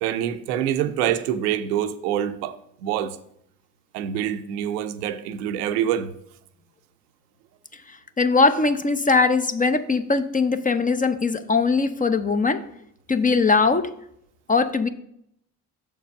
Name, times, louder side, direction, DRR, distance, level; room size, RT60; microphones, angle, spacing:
voice 1, 0.0-3.2 3.9-6.1, right 10 dB, 75° right, 0.6 m, -26 dB
voice 2, 7.7-12.6 13.1-13.9 14.5-14.9, left 4 dB, 20° left, 0.5 m, -21 dB
6.5 x 4.6 x 5.3 m
figure-of-eight pair, 45°, 46 cm